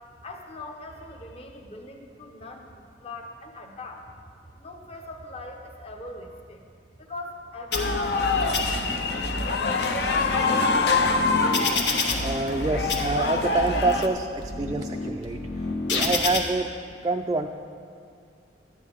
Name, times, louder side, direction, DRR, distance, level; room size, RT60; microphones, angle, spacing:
voice 1, 0.2-4.1 4.6-6.6 7.0-10.8, left 2 dB, 35° left, 2 dB, 1.0 m, -42 dB
sound 1, 7.7-8.2 8.5-9.2 9.8-12.6 12.9-13.6 14.2-16.4, left 3 dB, 80° left, 1.2 m, -30 dB
sound 2, 7.7-14.1, left 4 dB, 65° left, 0.6 m, -25 dB
voice 2, 12.2-15.4 15.9-16.7 17.0-17.5, right 3 dB, 25° right, 2 dB, 0.3 m, -26 dB
12.5 x 9.8 x 3.6 m, 2.2 s
head